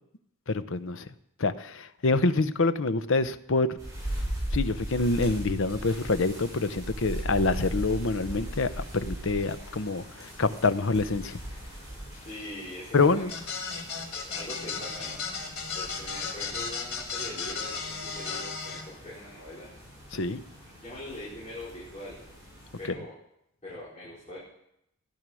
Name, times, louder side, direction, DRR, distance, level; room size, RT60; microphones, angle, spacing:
voice 1, 0.5-1.1 1.4-3.7 4.5-11.4 12.9-13.3 20.1-20.4, left 3 dB, 60° left, 12 dB, 0.8 m, -26 dB
sound 1, 3.8-22.9, equal, 15° right, 5.9 m, -39 dB
voice 2, 12.2-13.3 14.1-15.2 15.7-19.7 20.8-22.2 22.8-23.1 23.6-24.4, left 1 dB, 30° left, -9 dB, 4.5 m, -42 dB
sound 2, 13.3-18.8, left 5 dB, 75° left, 3.6 m, -35 dB
16.0 x 10.5 x 6.3 m, 0.80 s
head